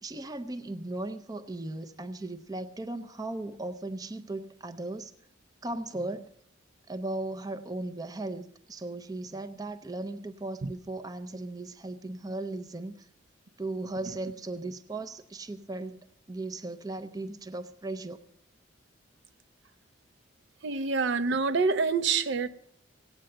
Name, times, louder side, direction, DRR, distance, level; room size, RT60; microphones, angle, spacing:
voice 1, 0.0-5.1 5.6-6.3 6.9-13.1 13.6-18.2, right 2 dB, 20° right, 0.5 m, -37 dB
voice 2, 20.6-22.5, right 4 dB, 65° right, 0.6 m, -26 dB
17.0 x 8.9 x 7.6 m
head